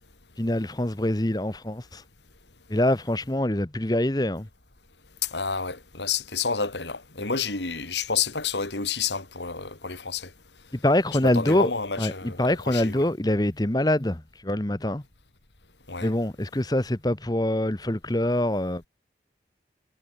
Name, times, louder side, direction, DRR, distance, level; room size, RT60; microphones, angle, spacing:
voice 1, 0.4-2.0 2.7-4.5 10.7-11.7 12.0-15.0 16.0-18.8, left 1 dB, 20° left, 1.1 m, -25 dB
voice 2, 5.2-10.3 11.2-12.9 15.9-16.1, left 5 dB, 80° left, 3.4 m, -29 dB
head